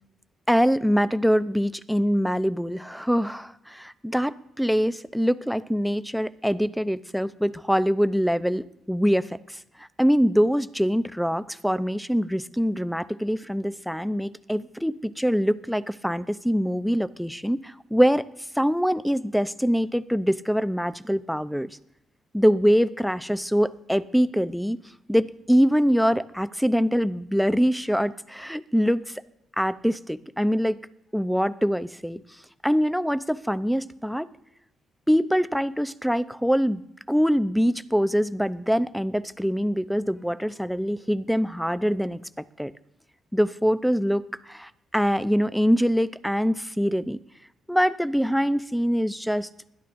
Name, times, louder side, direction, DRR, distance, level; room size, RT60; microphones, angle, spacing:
voice 1, 0.5-9.6 10.0-18.2 18.6-21.7 22.3-24.8 25.1-29.2 29.6-30.8 31.1-32.2 32.6-34.3 35.1-36.8 37.1-42.2 42.6-42.7 43.3-47.2 47.7-49.5, equal, ahead, 15 dB, 0.6 m, -24 dB
20.5 x 12.5 x 2.6 m, 0.84 s
cardioid pair, 90°, 0 cm